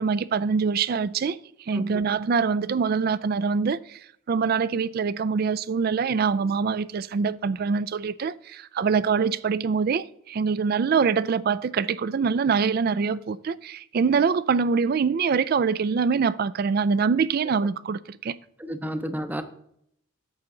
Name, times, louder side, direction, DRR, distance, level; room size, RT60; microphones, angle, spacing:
voice 1, 0.0-1.4 1.7-4.0 4.3-18.4, right 5 dB, 45° right, 0.3 m, -24 dB
voice 2, 1.7-2.0 18.6-19.4, equal, 10° right, 0.6 m, -31 dB
9.0 x 6.9 x 3.8 m
head